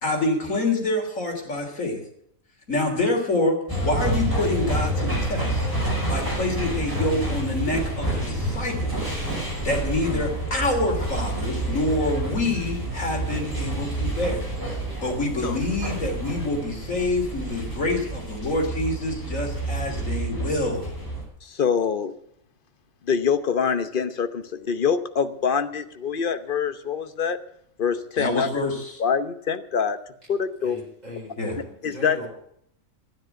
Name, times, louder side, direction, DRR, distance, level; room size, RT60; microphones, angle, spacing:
voice 1, 0.0-2.0 2.7-5.7 6.1-9.1 9.6-14.5 15.0-20.9 28.2-29.0 31.4-31.6, left 2 dB, 70° left, 2 dB, 3.7 m, -26 dB
sound 1, 3.7-21.2, right 1 dB, 15° right, 5.7 m, -28 dB
voice 2, 21.4-22.1 23.1-27.4 27.8-28.5 29.0-30.0 30.3-30.8 31.8-32.2, left 6 dB, 45° left, 10 dB, 1.0 m, -25 dB
voice 3, 30.6-32.3, left 1 dB, 30° right, -4 dB, 4.6 m, -40 dB
12.5 x 10.5 x 7.8 m, 0.69 s
omnidirectional pair, 1.4 m